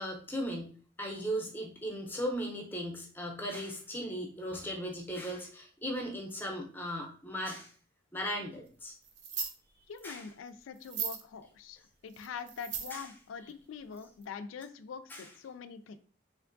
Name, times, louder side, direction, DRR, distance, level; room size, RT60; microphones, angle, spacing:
voice 1, 0.0-7.7 8.1-8.9 10.0-10.3 12.9-13.1 15.1-15.3, equal, 10° left, 0 dB, 0.6 m, -37 dB
sound 1, 9.0-9.6 10.0-10.1 10.8-11.2 12.1-13.0 14.0-14.1 14.2-14.3, right 7 dB, 65° right, 0.5 m, -37 dB
voice 2, 9.9-16.0, left 6 dB, 90° left, 10 dB, 0.3 m, -44 dB
3.4 x 2.5 x 2.5 m, 0.43 s
head